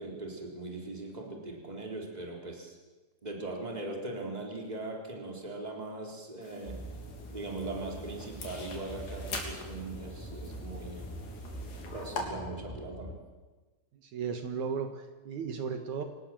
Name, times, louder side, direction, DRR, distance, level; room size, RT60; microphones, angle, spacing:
voice 1, 0.0-2.8 3.2-6.8 7.3-11.1 11.9-13.2, right 2 dB, 10° right, 1 dB, 3.8 m, -40 dB
sound 1, 6.4-12.2, left 4 dB, 85° left, 4.9 m, -44 dB
sound 2, 6.6-13.1, equal, 5° left, 2.6 m, -43 dB
voice 2, 13.9-16.0, right 6 dB, 70° right, 6 dB, 2.8 m, -35 dB
26.0 x 19.0 x 7.6 m, 1.3 s
omnidirectional pair, 3.6 m